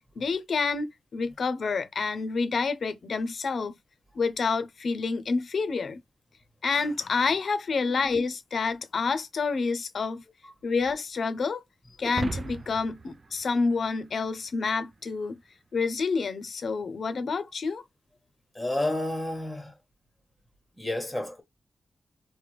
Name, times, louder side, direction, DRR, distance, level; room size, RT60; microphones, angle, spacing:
voice 1, 0.2-3.7 4.1-6.0 6.6-10.2 10.6-11.6 12.0-15.4 15.7-17.8, left 4 dB, 65° left, 0.5 m, -28 dB
sound 1, 12.0-14.5, right 3 dB, 40° right, 0.3 m, -37 dB
voice 2, 18.5-19.7 20.8-21.4, left 1 dB, ahead, 1.1 m, -30 dB
3.4 x 2.1 x 3.0 m
wide cardioid pair, 110°, 0 cm